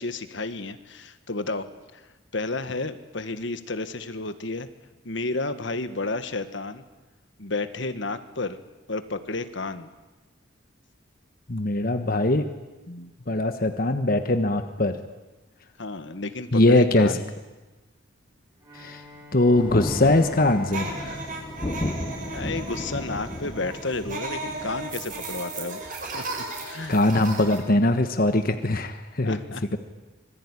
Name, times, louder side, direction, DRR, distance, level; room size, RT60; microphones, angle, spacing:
voice 1, 0.0-1.7 1.9-2.0 2.3-4.7 5.0-6.8 7.4-8.6 8.9-9.9 15.8-17.2 22.3-25.8 26.1-27.0 29.2-29.8, left 3 dB, 65° left, 11 dB, 1.5 m, -31 dB
voice 2, 11.5-12.4 12.9-15.0 16.5-17.1 18.7-19.0 19.3-21.3 26.9-29.4, left 2 dB, 45° left, 8 dB, 1.3 m, -22 dB
Bowed string instrument, 18.6-22.8, left 3 dB, 20° right, 6.3 m, -45 dB
Thunder, 19.6-25.4, left 1 dB, 25° left, 0.8 m, -34 dB
sound 1, 20.7-27.6, right 3 dB, 40° right, 6.5 m, -36 dB
25.5 x 21.5 x 9.9 m, 1.2 s
head